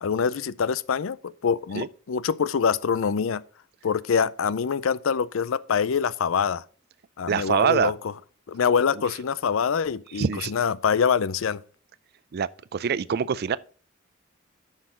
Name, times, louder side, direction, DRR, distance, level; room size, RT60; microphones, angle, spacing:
voice 1, 0.0-3.4 3.8-6.6 7.2-8.0 8.5-11.6, left 6 dB, 75° left, 0.5 m, -25 dB
voice 2, 7.3-7.9 10.1-10.5 12.3-13.6, right 7 dB, 50° right, 0.4 m, -24 dB
9.6 x 6.5 x 3.9 m
head